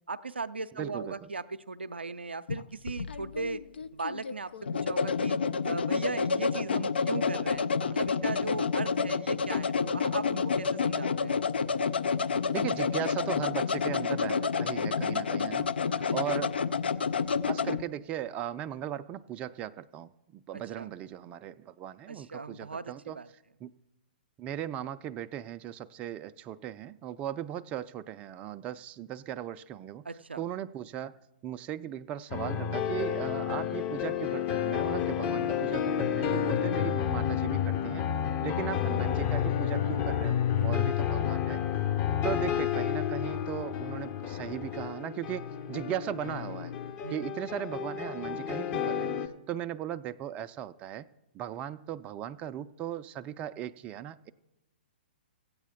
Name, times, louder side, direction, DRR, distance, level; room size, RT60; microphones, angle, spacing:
voice 1, 0.1-3.6 3.9-5.4 5.6-11.4 16.0-16.3 20.5-20.9 22.1-23.3 30.0-30.4 40.6-40.9 47.0-47.4, right 3 dB, 90° right, 11 dB, 0.4 m, -38 dB
voice 2, 0.8-1.3 12.5-15.7 15.9-16.5 17.5-23.2 23.6-23.7 24.4-30.0 30.4-31.1 31.4-38.0 38.4-40.4 40.6-41.6 42.2-46.7 47.1-49.1 49.5-51.1 51.3-54.3, right 11 dB, 25° right, 10 dB, 0.3 m, -37 dB
sound 1, 2.5-17.8, left 5 dB, 75° left, 0.4 m, -29 dB
sound 2, 32.3-49.3, left 9 dB, 30° left, 0.7 m, -30 dB
15.5 x 8.3 x 3.6 m, 0.92 s
figure-of-eight pair, 120°, 6 cm